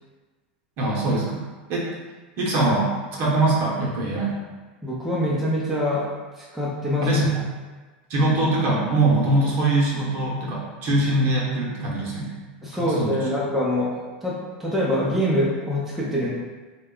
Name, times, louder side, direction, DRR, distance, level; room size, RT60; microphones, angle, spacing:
voice 1, 0.8-1.4 1.7-1.9 2.4-4.3 7.0-7.3 8.1-12.4 12.7-13.3, right 2 dB, 45° right, -4 dB, 0.8 m, -22 dB
voice 2, 4.8-6.0 6.4-7.1 12.6-16.3, equal, ahead, -6 dB, 0.5 m, -25 dB
2.2 x 2.0 x 3.7 m, 1.3 s
supercardioid pair, 120°, 5 cm